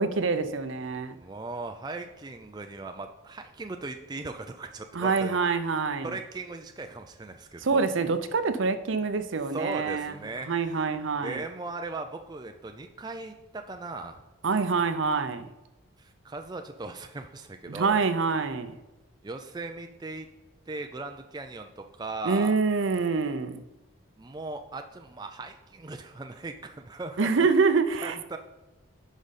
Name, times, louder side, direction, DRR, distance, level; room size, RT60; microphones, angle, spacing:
voice 1, 0.0-1.2 4.9-6.2 7.6-10.1 10.4-11.4 14.4-15.5 17.7-18.8 22.2-23.6 27.2-28.2, right 4 dB, 65° right, 10 dB, 0.6 m, -26 dB
voice 2, 1.2-5.4 6.0-7.9 9.5-10.9 11.2-14.2 16.0-18.0 19.2-20.3 20.7-22.6 24.2-27.3 28.0-28.4, right 3 dB, 20° right, 6 dB, 0.4 m, -38 dB
10.5 x 5.0 x 4.1 m, 1.0 s
head